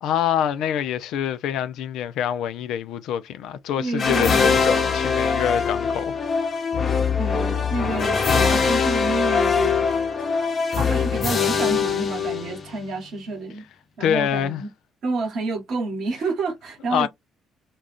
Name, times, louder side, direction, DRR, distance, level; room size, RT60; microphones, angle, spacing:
voice 1, 0.0-6.1 14.0-14.6 16.9-17.1, left 9 dB, 65° left, 0.3 m, -25 dB
voice 2, 3.8-4.5 7.2-9.8 10.7-13.7 14.0-14.7 15.0-17.1, right 3 dB, 60° right, 1.1 m, -29 dB
sound 1, 4.0-12.9, left 5 dB, 40° left, 0.8 m, -22 dB
2.3 x 2.3 x 3.4 m
hypercardioid pair, 50°, 0 cm